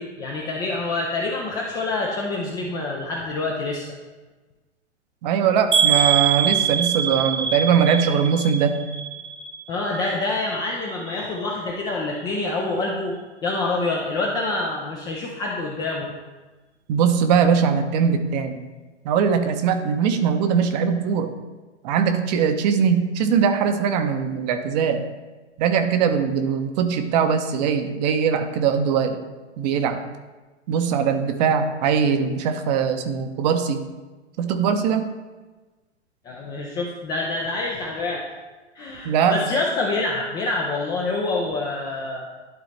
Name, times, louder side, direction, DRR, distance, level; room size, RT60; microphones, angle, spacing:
voice 1, 0.0-3.9 9.7-13.2 13.4-16.1 36.2-38.2 38.8-42.3, left 2 dB, 10° left, -2 dB, 0.3 m, -26 dB
voice 2, 5.2-8.8 16.9-18.6 19.0-21.3 21.8-25.0 25.6-29.2 29.6-30.0 30.7-33.8 34.4-35.1 39.0-39.4, right 7 dB, 35° right, 7 dB, 0.7 m, -21 dB
sound 1, 5.7-9.7 10.0-10.6 11.1-11.2 11.5-11.6, right 8 dB, 90° right, 1.4 m, -23 dB
12.0 x 3.9 x 3.2 m, 1.2 s
figure-of-eight pair, 115°, 35 cm